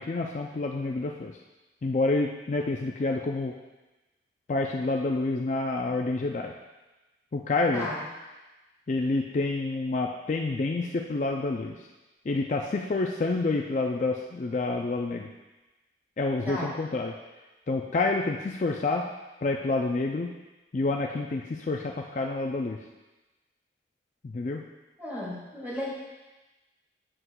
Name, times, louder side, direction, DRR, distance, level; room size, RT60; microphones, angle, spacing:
voice 1, 0.0-1.4 1.8-3.5 4.5-6.5 7.3-7.9 8.9-11.8 12.3-15.3 16.2-17.1 17.7-19.0 19.4-20.3 20.7-22.8 24.2-24.6, left 3 dB, 40° left, 1 dB, 0.4 m, -28 dB
voice 2, 25.0-25.9, left 1 dB, 10° right, -8 dB, 2.5 m, -34 dB
7.8 x 7.8 x 2.3 m, 1.1 s
head